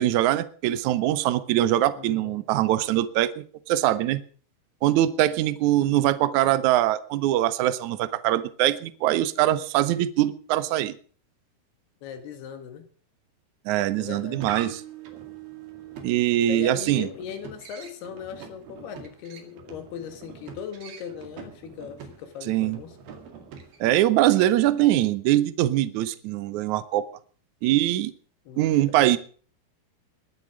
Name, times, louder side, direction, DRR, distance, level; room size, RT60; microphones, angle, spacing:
voice 1, 0.0-4.2 4.8-11.0 13.6-14.8 16.0-17.1 22.5-22.8 23.8-27.1 27.6-28.1 28.6-29.2, right 13 dB, 85° right, 14 dB, 1.7 m, -22 dB
voice 2, 2.0-2.4 5.8-6.2 12.0-12.9 14.0-14.4 16.5-22.9 28.5-29.0, left 8 dB, 75° left, 7 dB, 3.8 m, -39 dB
sound 1, 14.0-24.0, right 7 dB, 70° right, 4.1 m, -43 dB
21.5 x 8.0 x 6.2 m, 0.44 s
omnidirectional pair, 4.6 m